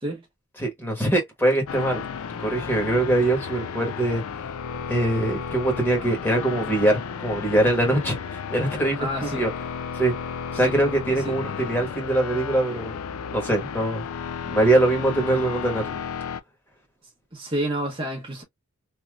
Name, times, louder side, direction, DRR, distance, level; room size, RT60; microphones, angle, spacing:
voice 1, 0.6-2.0 2.4-4.2 4.9-9.5 9.9-10.1 10.5-13.0 13.3-14.0 14.5-16.0, right 1 dB, 10° left, 1.2 m, -23 dB
sound 1, 1.7-16.4, left 6 dB, 90° left, 0.4 m, -33 dB
voice 2, 9.0-9.5 10.5-10.7 11.2-11.3 17.0-18.4, right 1 dB, 25° right, 0.8 m, -30 dB
3.2 x 2.8 x 2.3 m
head